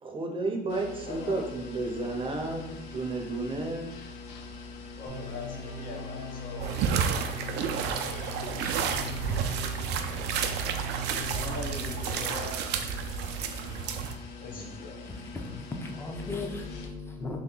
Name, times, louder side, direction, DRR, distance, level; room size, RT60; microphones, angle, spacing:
voice 1, 0.0-4.0, right 2 dB, 30° right, 3 dB, 0.6 m, -32 dB
sound 1, 0.7-16.9, left 4 dB, 85° left, 0.5 m, -44 dB
voice 2, 1.1-1.5 5.0-7.2 7.8-8.3 11.3-12.7 14.4-15.0, left 3 dB, 55° left, 1 dB, 0.8 m, -42 dB
sound 2, 5.1-12.3, equal, 30° left, 1.3 m, -40 dB
sound 3, 6.6-14.2, right 7 dB, 80° right, 0.4 m, -31 dB
voice 3, 15.1-17.4, left 3 dB, 15° left, 2 dB, 0.5 m, -37 dB
3.1 x 2.9 x 3.8 m, 0.91 s
cardioid pair, 110°, 17 cm